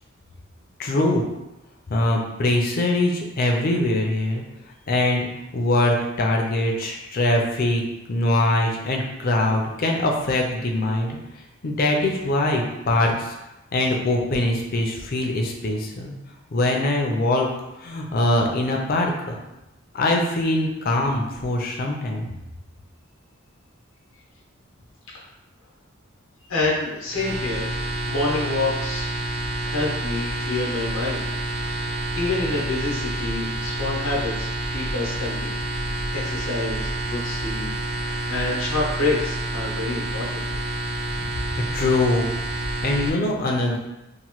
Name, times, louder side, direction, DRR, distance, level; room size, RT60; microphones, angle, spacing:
voice 1, 0.8-1.3 1.9-4.4 4.9-5.3 5.5-7.8 8.1-11.2 11.6-13.3 13.7-16.1 16.5-17.5 17.8-19.4 19.9-22.3 41.7-42.3 42.8-43.8, left 1 dB, 45° left, 1 dB, 0.4 m, -22 dB
voice 2, 26.5-29.1 29.6-31.3 31.6-35.5 36.1-40.4 41.2-41.3, left 2 dB, 90° left, -4 dB, 0.8 m, -28 dB
sound 1, 27.1-43.1, right 1 dB, 55° right, 0.3 m, -28 dB
2.9 x 2.1 x 2.9 m, 0.95 s
head